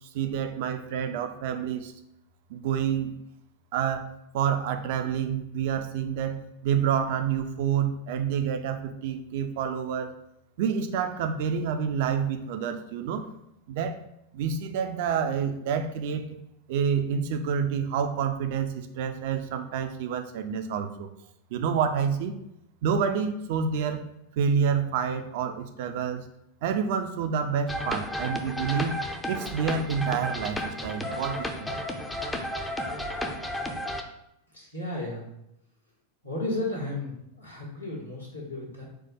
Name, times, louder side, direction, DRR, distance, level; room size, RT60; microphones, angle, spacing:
voice 1, 0.0-1.9 2.5-3.1 3.7-4.0 4.3-10.1 10.6-13.3 13.7-14.0 14.3-16.4 16.7-21.1 21.5-22.4 22.8-24.0 24.4-26.3 26.6-28.9 29.3-31.7, right 7 dB, 50° right, 7 dB, 0.4 m, -28 dB
sound 1, 27.7-34.0, equal, 5° left, 0.5 m, -33 dB
voice 2, 34.5-35.3 36.2-38.8, left 2 dB, 80° left, -4 dB, 1.4 m, -34 dB
4.4 x 2.2 x 4.2 m, 0.82 s
figure-of-eight pair, 90°, 0 cm